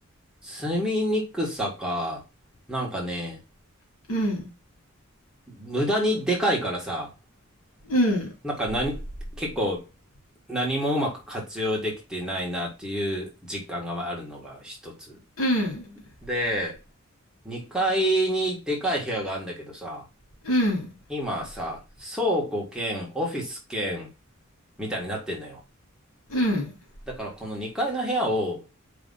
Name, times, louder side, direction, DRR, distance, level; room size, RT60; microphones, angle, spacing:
voice 1, 0.4-2.2 2.7-3.4 5.5-7.1 8.4-9.0 9.3-9.9 10.5-15.2 16.2-16.8 17.5-20.0 21.1-24.1 24.8-25.6 27.1-28.6, equal, 5° right, 1.8 m, -28 dB
voice 2, 4.1-4.5 7.9-8.3 15.4-16.0 20.4-20.9 26.3-26.7, equal, 85° left, 2.7 m, -24 dB
5.0 x 3.5 x 5.6 m
head